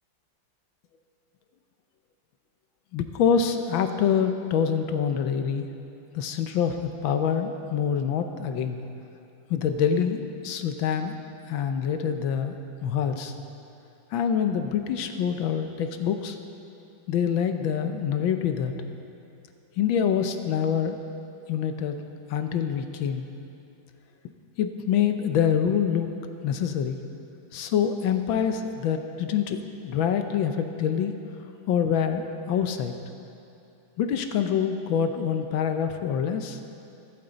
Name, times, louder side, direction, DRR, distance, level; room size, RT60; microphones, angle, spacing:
voice 1, 2.9-5.7 6.1-8.8 9.5-11.2 11.5-12.5 12.8-13.3 14.1-16.4 17.1-18.7 19.8-21.0 21.5-22.0 22.3-23.3 24.6-26.1 26.4-27.0 27.5-31.1 31.7-32.9 34.0-36.6, left 8 dB, 70° left, 7 dB, 1.4 m, -26 dB
22.5 x 8.9 x 4.0 m, 2.7 s
omnidirectional pair, 2.3 m